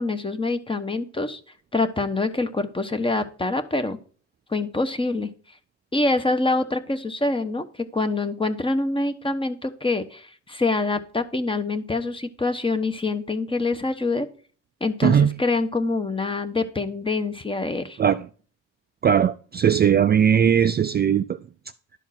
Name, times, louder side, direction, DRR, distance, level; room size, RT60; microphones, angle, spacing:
voice 1, 0.0-1.4 1.7-4.0 4.5-5.3 5.9-14.3 14.8-18.0, left 3 dB, 15° left, 1.1 m, -25 dB
voice 2, 15.0-15.3 18.0-18.3 19.0-21.4, right 8 dB, 35° right, 0.4 m, -19 dB
11.5 x 4.5 x 5.8 m
cardioid pair, 90°, 30 cm